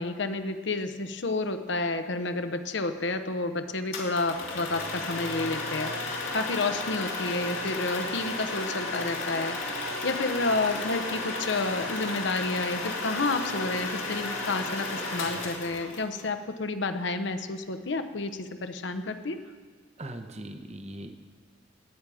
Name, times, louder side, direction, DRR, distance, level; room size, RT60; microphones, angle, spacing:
voice 1, 0.0-19.4, left 3 dB, 65° left, 9 dB, 0.8 m, -30 dB
sound 1, 3.9-16.2, left 2 dB, 85° left, 2.6 m, -33 dB
voice 2, 20.0-21.1, right 1 dB, 30° right, 7 dB, 0.8 m, -40 dB
19.0 x 9.1 x 4.9 m, 1.5 s
head